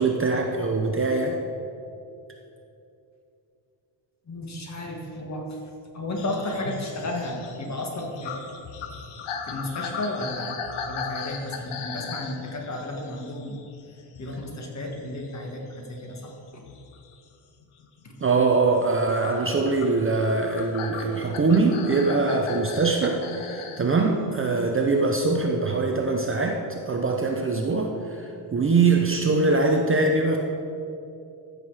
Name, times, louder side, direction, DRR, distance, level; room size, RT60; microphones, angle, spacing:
voice 1, 0.0-1.4 18.2-30.4, right 3 dB, 25° right, 2 dB, 0.6 m, -23 dB
voice 2, 4.2-5.6 5.9-8.4 9.4-10.6 10.8-13.6 14.2-16.6 18.0-18.1, left 1 dB, 35° left, 1 dB, 1.6 m, -33 dB
sound 1, 6.2-14.4 14.8-17.1 17.6-18.1 19.2-23.9 25.2-25.3, left 6 dB, 80° left, 1.1 m, -38 dB
14.0 x 6.6 x 4.8 m, 2.7 s
wide cardioid pair, 155°, 49 cm